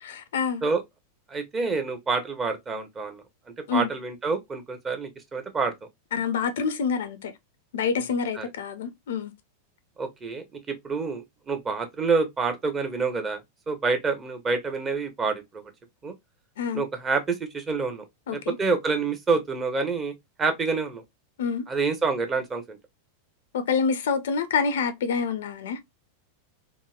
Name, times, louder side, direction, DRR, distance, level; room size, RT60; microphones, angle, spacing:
voice 1, 0.0-0.6 3.7-3.9 6.1-7.3 7.7-9.3 16.6-16.8 18.3-18.5 21.4-21.6 23.5-25.8, left 6 dB, 60° left, 0.4 m, -27 dB
voice 2, 1.3-3.2 3.7-5.7 8.3-8.4 10.0-13.4 13.7-15.6 16.0-16.1 16.7-18.0 18.3-20.1 20.4-21.0 21.7-22.8, right 4 dB, 20° right, 0.7 m, -27 dB
2.9 x 2.5 x 2.3 m
figure-of-eight pair, 90°, 0 cm